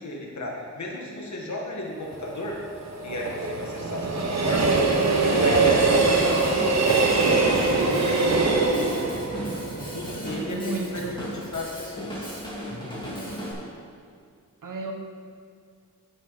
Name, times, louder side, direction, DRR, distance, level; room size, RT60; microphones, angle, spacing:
voice 1, 0.0-2.6 3.0-4.8 5.2-6.4 6.9-9.1 9.9-12.3, left 1 dB, 60° left, -2 dB, 1.9 m, -34 dB
Train, 2.0-11.1 11.5-11.6, right 3 dB, 55° right, 1.2 m, -23 dB
Drum kit / Drum, 6.0-13.5, equal, 15° left, 2.7 m, -36 dB
voice 2, 10.5-11.2 14.6-14.9, right 3 dB, 75° right, 2 dB, 1.2 m, -32 dB
10.0 x 7.4 x 4.3 m, 2.1 s
wide cardioid pair, 85°, 32 cm